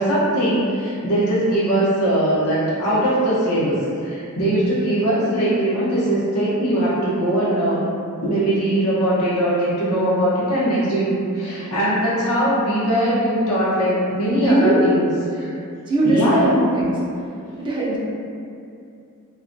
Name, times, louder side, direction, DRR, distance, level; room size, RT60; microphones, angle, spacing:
voice 1, 0.0-7.8 8.2-15.5 16.0-16.6, right 1 dB, 85° left, -9 dB, 0.8 m, -20 dB
voice 2, 14.4-14.9 15.9-17.0 17.6-18.0, right 1 dB, 20° right, -5 dB, 0.3 m, -19 dB
2.3 x 2.1 x 2.5 m, 2.5 s
head